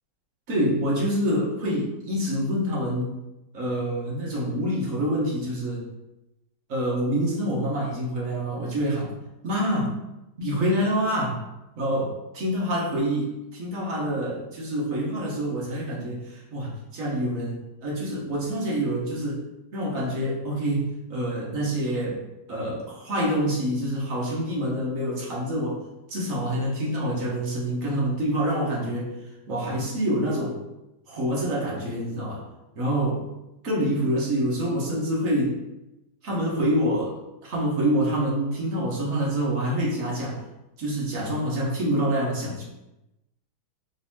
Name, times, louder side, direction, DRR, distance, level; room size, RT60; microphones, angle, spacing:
voice 1, 0.5-3.2 3.5-5.9 6.7-9.1 9.4-10.0 10.4-11.4 11.8-19.4 19.7-22.2 22.5-25.8 26.1-29.1 29.5-30.6 31.1-32.4 32.8-33.2 33.6-35.6 36.2-37.1 37.4-40.4 40.8-42.6, equal, 50° right, -4 dB, 1.2 m, -26 dB
3.9 x 3.8 x 2.8 m, 0.93 s
omnidirectional pair, 2.3 m